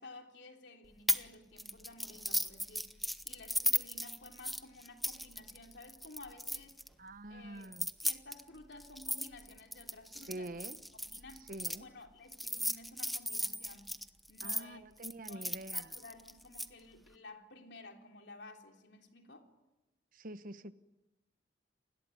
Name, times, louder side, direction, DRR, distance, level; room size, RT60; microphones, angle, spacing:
voice 1, 0.0-6.8 7.3-7.7 8.0-10.5 10.9-14.0 14.3-14.9 15.3-15.4 15.7-19.5, left 2 dB, 70° left, 4 dB, 3.5 m, -53 dB
sound 1, 1.1-1.3 1.6-6.9 7.6-11.8 12.3-14.6 15.0-16.7, equal, ahead, 0.9 m, -36 dB
voice 2, 7.0-7.9 10.3-10.8 11.5-11.9 14.4-15.9 20.1-20.7, right 1 dB, 50° right, 13 dB, 1.1 m, -46 dB
29.5 x 21.0 x 9.3 m, 1.0 s
head